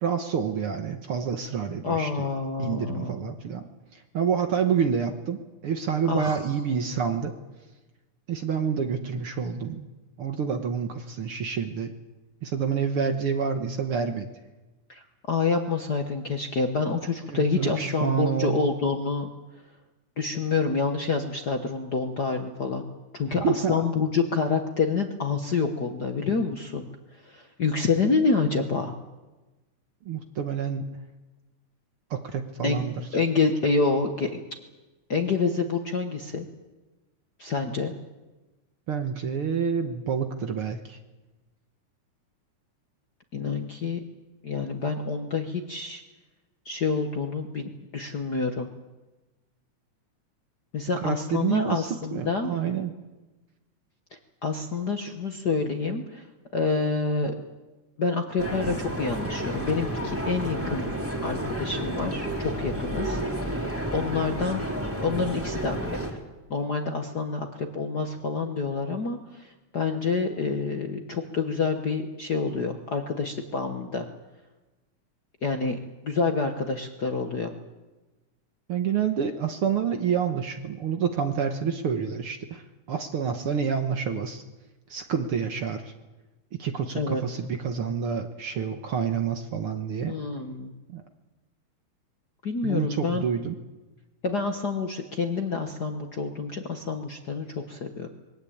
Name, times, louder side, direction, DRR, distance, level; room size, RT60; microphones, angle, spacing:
voice 1, 0.0-2.3 2.6-3.6 3.9-7.4 8.3-9.9 10.2-11.9 12.4-14.3 17.3-18.7 23.3-23.8 30.1-31.0 32.1-32.9 38.9-41.0 51.0-52.9 78.7-84.4 84.9-85.9 86.5-90.2 90.9-91.0 92.6-93.6, right 7 dB, 55° right, 6 dB, 1.8 m, -28 dB
voice 2, 1.8-3.1 6.0-6.4 14.9-19.3 20.2-22.9 23.1-28.9 32.6-32.8 33.1-34.3 35.1-36.5 37.4-37.9 43.3-44.0 44.4-46.0 46.6-48.7 50.7-52.5 54.4-57.3 58.0-60.9 61.2-64.7 65.0-66.2 66.5-74.1 75.4-77.5 86.9-87.2 90.1-90.7 92.4-93.2 94.2-98.1, left 4 dB, 50° left, 4 dB, 1.3 m, -28 dB
sound 1, 58.4-66.1, right 1 dB, 5° right, 2.7 m, -31 dB
22.0 x 18.5 x 8.7 m, 1.1 s
omnidirectional pair, 3.5 m